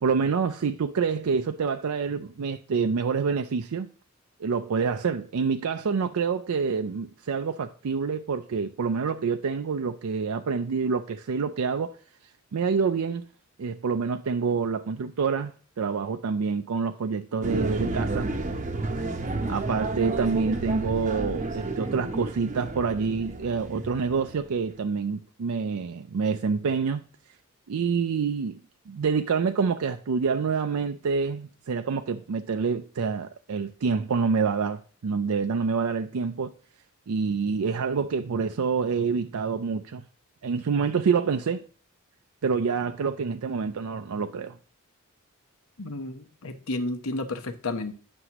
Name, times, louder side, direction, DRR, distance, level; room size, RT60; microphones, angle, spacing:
voice 1, 0.0-3.9 4.4-11.9 12.5-13.2 13.6-18.3 19.5-27.0 27.7-28.6 28.9-36.5 37.1-40.0 40.4-41.7 42.4-44.6, right 5 dB, 85° right, 0.4 m, -27 dB
sound 1, 17.4-24.6, right 2 dB, 35° right, 0.7 m, -31 dB
voice 2, 45.8-47.9, left 2 dB, 80° left, 0.9 m, -32 dB
9.6 x 6.0 x 2.9 m
head